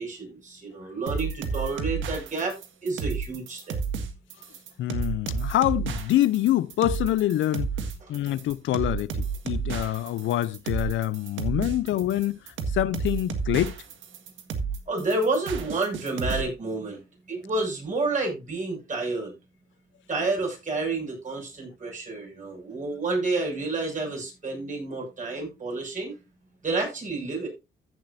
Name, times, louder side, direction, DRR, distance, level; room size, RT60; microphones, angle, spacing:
voice 1, 0.0-2.5 2.8-3.8 14.9-17.0 17.3-19.3 20.1-26.1 26.6-27.5, right 3 dB, 40° right, 6.7 m, -29 dB
sound 1, 1.1-16.4, right 5 dB, 80° right, 1.6 m, -31 dB
voice 2, 4.8-7.7 8.1-9.1 9.4-12.4 12.7-13.8, left 14 dB, 75° left, 0.6 m, -25 dB
15.0 x 7.4 x 2.7 m
cardioid pair, 90°, 20 cm